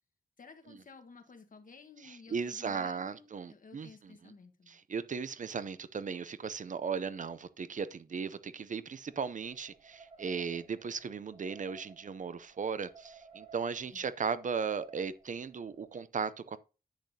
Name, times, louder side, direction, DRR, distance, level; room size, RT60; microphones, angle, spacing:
voice 1, 0.4-4.8 13.9-14.0, left 4 dB, 60° left, 1.3 m, -54 dB
voice 2, 2.0-4.3 4.7-16.6, right 5 dB, 55° right, 0.5 m, -37 dB
sound 1, 9.1-16.0, right 5 dB, 35° right, 1.3 m, -58 dB
10.5 x 8.0 x 2.7 m
wide cardioid pair, 155°, 16 cm